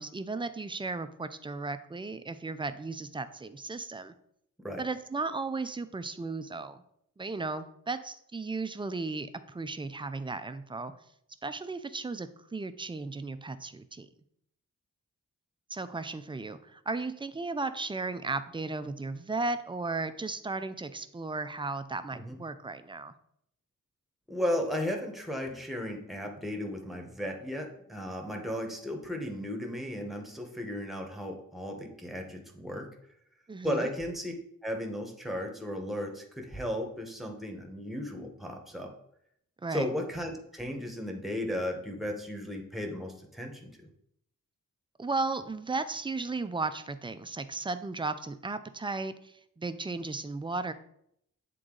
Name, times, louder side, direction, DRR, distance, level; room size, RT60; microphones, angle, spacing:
voice 1, 0.0-4.1 4.8-6.8 7.2-10.9 11.4-14.1 15.7-23.1 33.5-33.9 39.6-39.9 45.0-50.7, right 3 dB, 15° right, 11 dB, 0.3 m, -35 dB
voice 2, 24.3-32.9 33.6-34.3 34.6-38.9 39.7-43.9, left 1 dB, ahead, 3 dB, 0.9 m, -35 dB
7.9 x 3.8 x 3.8 m, 0.73 s
wide cardioid pair, 125°, 33 cm